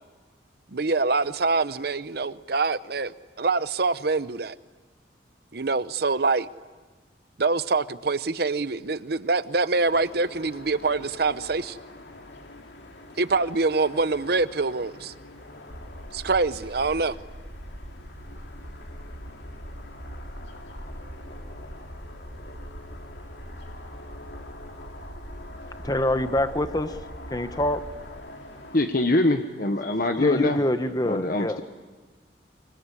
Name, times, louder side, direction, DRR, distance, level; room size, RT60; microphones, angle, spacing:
voice 1, 0.7-4.6 5.5-6.5 7.4-11.8 13.2-15.1 16.1-17.2, right 3 dB, 55° right, 0.8 m, -25 dB
sound 1, 9.9-28.8, left 2 dB, 65° left, 2.6 m, -45 dB
sound 2, 15.7-28.1, equal, 90° right, 5.6 m, -42 dB
voice 2, 25.8-27.8 30.2-31.6, left 1 dB, 20° left, 1.1 m, -26 dB
voice 3, 28.7-30.6 31.1-31.6, left 2 dB, 50° left, 1.1 m, -23 dB
25.0 x 23.0 x 9.8 m
head